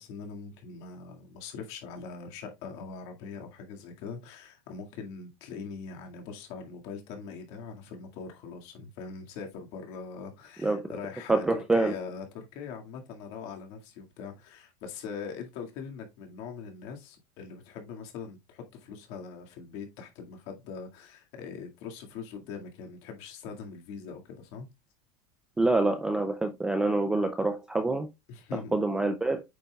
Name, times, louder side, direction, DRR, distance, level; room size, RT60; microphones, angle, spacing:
voice 1, 0.0-24.7 28.3-28.8, left 5 dB, 45° left, 2.0 m, -42 dB
voice 2, 11.3-11.9 25.6-28.1 28.7-29.4, right 2 dB, 5° right, 0.4 m, -26 dB
8.6 x 5.4 x 2.3 m
supercardioid pair, 180°, 16 cm